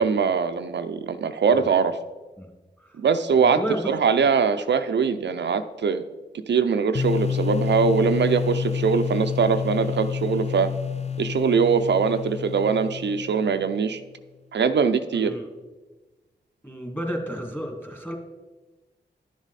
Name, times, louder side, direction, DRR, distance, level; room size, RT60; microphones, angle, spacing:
voice 1, 0.0-2.0 3.0-3.6 3.9-6.0 6.5-10.7 11.2-14.0 14.5-15.3, right 6 dB, 75° right, 9 dB, 0.5 m, -22 dB
voice 2, 3.4-3.9 15.1-15.5 16.6-18.1, equal, 10° left, 2 dB, 2.2 m, -32 dB
sound 1, 6.9-13.8, left 7 dB, 35° left, 0.5 m, -29 dB
11.0 x 7.2 x 4.1 m, 1.2 s
cardioid pair, 50°, 18 cm